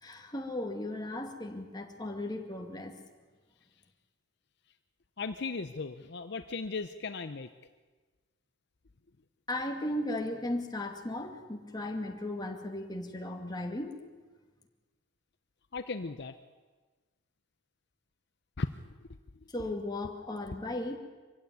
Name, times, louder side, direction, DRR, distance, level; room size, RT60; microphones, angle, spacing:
voice 1, 0.0-3.0 9.5-14.0 19.5-21.0, left 1 dB, 20° left, 3 dB, 2.2 m, -36 dB
voice 2, 5.2-7.5 15.7-16.3 18.6-18.7, left 4 dB, 60° left, 9 dB, 0.7 m, -36 dB
24.0 x 15.5 x 9.4 m, 1.3 s
head